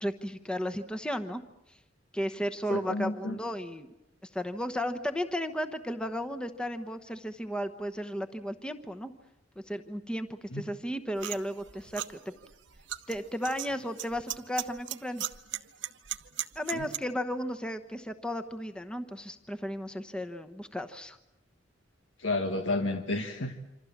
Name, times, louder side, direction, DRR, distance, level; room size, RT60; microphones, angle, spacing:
voice 1, 0.0-1.4 1.7-1.8 2.1-3.9 4.3-9.1 9.7-12.2 13.1-15.3 16.5-21.2, equal, 5° left, 7 dB, 1.0 m, -34 dB
voice 2, 2.7-3.4 10.5-10.6 16.7-16.9 22.2-23.6, left 2 dB, 90° left, 6 dB, 1.7 m, -31 dB
sound 1, 11.2-17.0, right 12 dB, 70° right, 1.0 m, -38 dB
27.0 x 26.0 x 7.3 m, 0.89 s
head